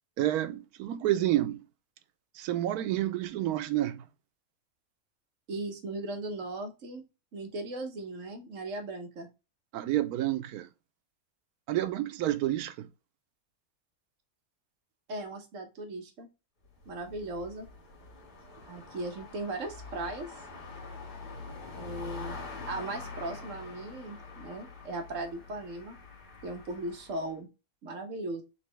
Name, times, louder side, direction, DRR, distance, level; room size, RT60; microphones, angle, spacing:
voice 1, 0.2-1.6 2.3-4.0 9.7-10.7 11.7-12.9, right 14 dB, 85° right, 1.1 m, -29 dB
voice 2, 5.5-7.0 7.3-9.3 15.1-16.3 16.9-17.7 18.7-20.3 21.7-22.4 22.7-26.0 26.4-27.5 27.8-28.4, right 2 dB, 60° right, 1.2 m, -37 dB
sound 1, 16.6-27.3, left 4 dB, 60° left, 2.0 m, -45 dB
4.1 x 3.2 x 3.2 m
omnidirectional pair, 1.5 m